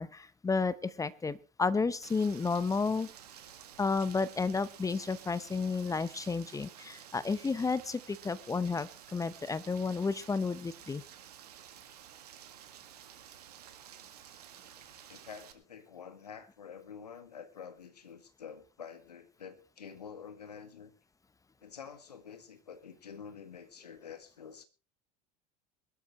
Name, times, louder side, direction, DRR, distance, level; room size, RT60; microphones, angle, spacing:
voice 1, 0.0-3.1 3.8-11.0, left 4 dB, 15° left, 0.9 m, -32 dB
Rain, 2.0-15.5, right 10 dB, 75° right, 1.9 m, -52 dB
voice 2, 15.1-20.9 21.6-24.6, left 7 dB, 85° left, 1.8 m, -48 dB
22.0 x 12.5 x 3.1 m
figure-of-eight pair, 75°, 20 cm